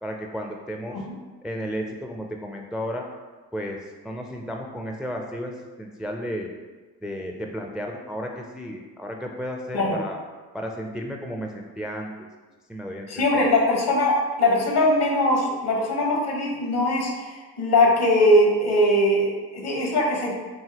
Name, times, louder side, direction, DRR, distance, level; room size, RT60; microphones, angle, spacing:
voice 1, 0.0-1.0 1.4-3.1 3.5-6.5 7.0-10.2 10.5-12.1 12.7-13.5, equal, ahead, 2 dB, 0.4 m, -33 dB
voice 2, 13.1-20.3, left 1 dB, 65° left, -1 dB, 1.3 m, -21 dB
4.8 x 2.8 x 2.9 m, 1.3 s
supercardioid pair, 50°, 44 cm